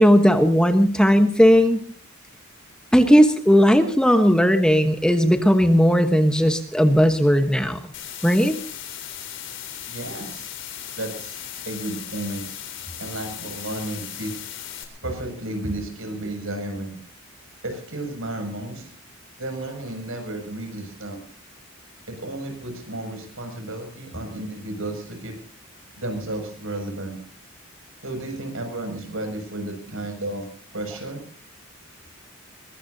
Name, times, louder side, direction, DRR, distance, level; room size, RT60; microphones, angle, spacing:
voice 1, 0.0-1.8 2.9-7.8 8.2-8.6, equal, 5° left, 7 dB, 1.2 m, -16 dB
sound 1, 7.9-14.8, left 10 dB, 55° left, 4.0 m, -37 dB
voice 2, 9.9-10.5 11.0-12.5 13.0-14.6 15.0-17.0 17.6-18.9 19.4-21.2 22.1-25.4 26.0-27.2 28.0-30.5 30.7-31.2, right 1 dB, 70° right, 5 dB, 6.9 m, -32 dB
23.0 x 22.5 x 2.8 m, 0.43 s
head